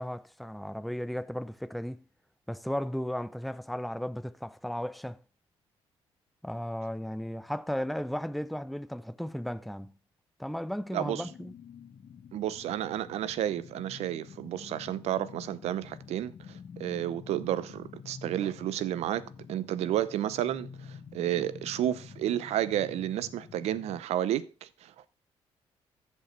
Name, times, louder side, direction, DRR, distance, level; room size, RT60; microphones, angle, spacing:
voice 1, 0.0-2.0 2.5-5.2 6.4-10.0 10.4-11.5, equal, ahead, 0.6 m, -35 dB
voice 2, 10.9-11.3 12.3-25.1, right 12 dB, 75° right, 0.7 m, -31 dB
sound 1, 11.1-24.0, left 6 dB, 50° left, 0.9 m, -48 dB
14.5 x 5.3 x 3.2 m
supercardioid pair, 70°, 11 cm